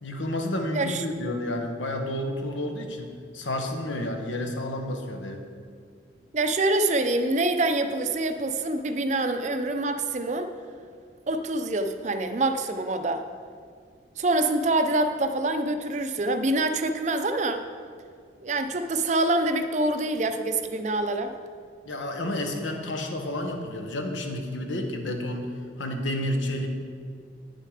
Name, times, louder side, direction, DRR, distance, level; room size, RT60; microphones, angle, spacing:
voice 1, 0.0-3.1 3.3-5.5 21.9-25.5 25.8-26.7, left 1 dB, 85° left, 4 dB, 1.1 m, -30 dB
voice 2, 6.3-10.5 11.3-13.2 14.2-17.6 18.4-21.3, right 2 dB, 40° right, 8 dB, 0.5 m, -25 dB
9.5 x 6.5 x 5.0 m, 2.1 s
head